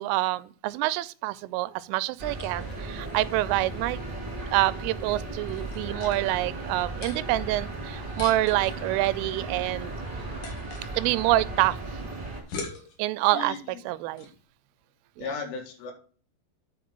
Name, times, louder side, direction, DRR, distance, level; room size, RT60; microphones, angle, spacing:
voice 1, 0.0-4.0 4.5-9.9 11.0-11.8 13.0-13.6 13.9-14.3 15.2-15.3, right 17 dB, 90° right, 3.1 m, -26 dB
sound 1, 1.6-14.4, left 4 dB, 55° left, 2.8 m, -45 dB
sound 2, 2.2-12.4, right 2 dB, 15° right, 1.7 m, -36 dB
voice 2, 13.3-13.8 15.2-15.9, left 5 dB, 75° left, 4.4 m, -35 dB
9.5 x 5.1 x 5.1 m
omnidirectional pair, 5.7 m